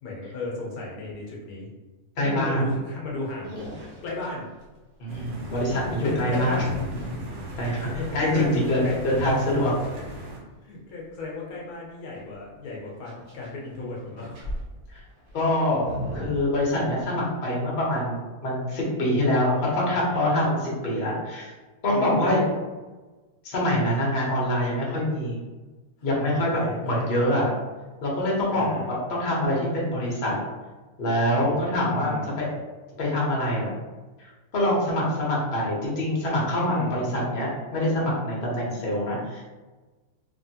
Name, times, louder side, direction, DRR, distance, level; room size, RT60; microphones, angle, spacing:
voice 1, 0.0-1.7 2.2-3.6 4.0-4.5 5.9-6.7 7.7-8.5 8.8-9.0 10.6-14.4 21.9-22.4 26.0-27.2 28.5-29.0 31.3-32.4 36.6-37.1, left 2 dB, 75° left, -3 dB, 1.2 m, -35 dB
voice 2, 2.2-2.6 5.0-6.6 7.6-9.7 15.3-21.5 21.8-22.4 23.4-25.4 26.0-27.5 28.0-30.3 31.0-32.5 33.0-33.7 34.2-39.4, left 1 dB, 45° left, -4 dB, 0.9 m, -25 dB
sound 1, 3.3-4.7 5.6-9.3 12.1-13.6 14.0-17.2, equal, 65° right, 1.1 m, -39 dB
sound 2, 5.1-10.4, right 1 dB, 85° right, 1.3 m, -37 dB
2.9 x 2.7 x 2.7 m, 1.2 s
omnidirectional pair, 1.6 m